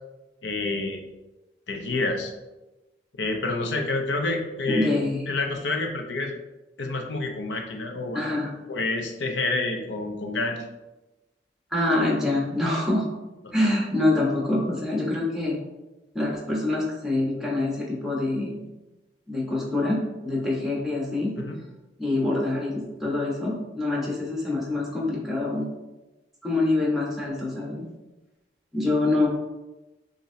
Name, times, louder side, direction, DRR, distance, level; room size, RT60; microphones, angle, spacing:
voice 1, 0.4-1.0 1.7-2.3 3.1-4.9 5.3-6.3 6.8-8.2 8.7-10.7 13.4-13.6 21.4-21.6, left 2 dB, 80° left, 3 dB, 0.7 m, -28 dB
voice 2, 4.7-5.2 8.1-8.5 11.7-13.0 13.5-15.6 16.1-18.5 19.3-21.3 22.0-25.7 26.4-27.9 28.7-29.3, left 2 dB, ahead, -4 dB, 1.2 m, -25 dB
7.0 x 2.7 x 2.8 m, 1.1 s
head